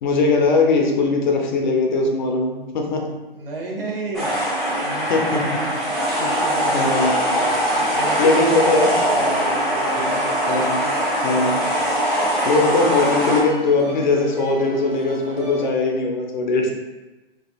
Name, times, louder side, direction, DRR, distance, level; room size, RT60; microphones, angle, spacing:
voice 1, 0.0-3.1 5.0-5.4 6.7-7.1 8.2-8.9 9.9-10.1 10.5-10.8 11.2-11.6 12.4-16.7, left 3 dB, 50° left, 2 dB, 0.5 m, -20 dB
voice 2, 3.3-4.4 4.8-5.8 6.2-10.5 12.6-12.9, right 3 dB, 65° right, -2 dB, 0.9 m, -32 dB
sound 1, 4.1-13.4, equal, ahead, 0.8 m, -22 dB
sound 2, 8.1-15.7, equal, 20° right, 0.4 m, -36 dB
3.4 x 2.3 x 2.3 m, 1.1 s
figure-of-eight pair, 120°, 30 cm